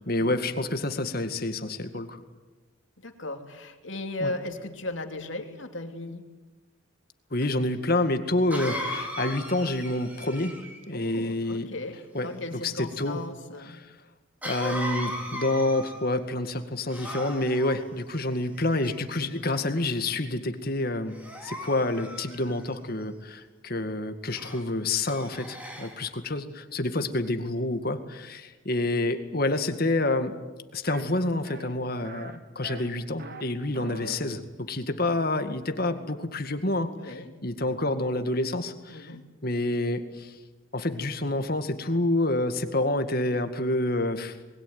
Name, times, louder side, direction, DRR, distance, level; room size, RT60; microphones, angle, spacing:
voice 1, 0.0-2.2 4.2-4.3 7.3-10.6 10.9-11.7 12.1-13.2 13.6-13.9 14.4-21.1 21.4-30.3 30.7-39.1 39.4-40.4 40.7-44.4, left 2 dB, 45° left, 8 dB, 2.0 m, -28 dB
voice 2, 3.0-6.2 10.9-13.8 37.0-37.3 38.9-39.2, left 2 dB, 70° left, 5 dB, 2.9 m, -36 dB
Cough, 7.4-7.5 8.5-10.9 14.4-16.2 16.9-17.8 18.6-19.2 19.8-20.1 21.1-22.7 24.4-24.6 25.1-26.0, equal, 10° right, 4.1 m, -37 dB
sound 1, 30.9-31.0 31.4-31.7 32.0-32.4 32.6-33.4 33.7-34.2, right 2 dB, 50° right, 2.2 m, -42 dB
26.5 x 21.5 x 9.6 m, 1.2 s
head